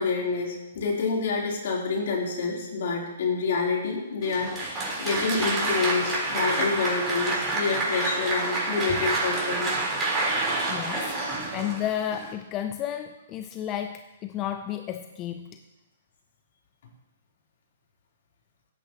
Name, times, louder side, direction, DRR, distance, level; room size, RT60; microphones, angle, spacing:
voice 1, 0.0-9.7, left 4 dB, 60° left, -2 dB, 3.5 m, -28 dB
Applause, 4.2-12.3, right 2 dB, 15° right, 4.0 m, -28 dB
voice 2, 10.7-11.1 11.5-15.6, left 10 dB, 30° left, 8 dB, 0.5 m, -32 dB
16.5 x 9.0 x 3.0 m, 1.1 s
hypercardioid pair, 130°, 0 cm